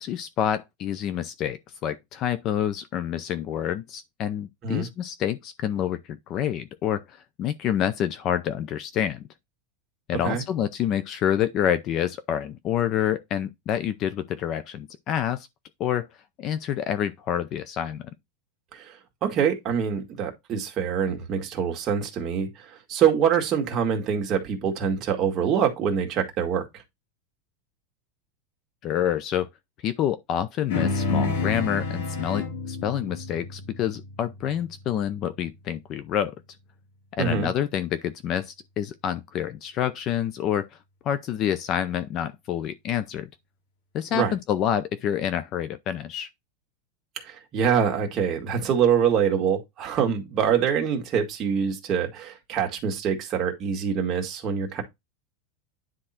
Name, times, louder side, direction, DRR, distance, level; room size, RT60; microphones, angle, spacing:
voice 1, 0.0-9.2 10.1-15.5 15.8-16.1 16.4-18.1 28.8-29.5 29.8-36.3 37.1-40.7 41.0-43.3 43.9-46.3, left 10 dB, 30° left, 0.5 m, -27 dB
voice 2, 19.2-22.5 22.9-26.7 37.2-37.5 44.1-44.3 47.2-54.8, right 7 dB, 25° right, 1.9 m, -25 dB
sound 1, 30.7-35.4, left 3 dB, 85° left, 3.1 m, -30 dB
9.9 x 3.7 x 4.3 m
supercardioid pair, 175°, 0 cm